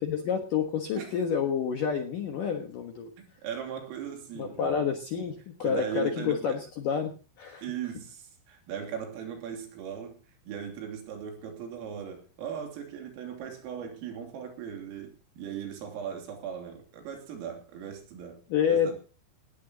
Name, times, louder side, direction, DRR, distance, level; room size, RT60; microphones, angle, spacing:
voice 1, 0.0-3.1 4.4-7.6 18.5-18.9, left 7 dB, 65° left, 4 dB, 2.1 m, -29 dB
voice 2, 3.2-4.8 5.6-6.4 7.6-10.2 10.5-18.9, right 8 dB, 85° right, 3 dB, 5.7 m, -38 dB
19.5 x 14.5 x 2.9 m, 0.35 s
omnidirectional pair, 5.8 m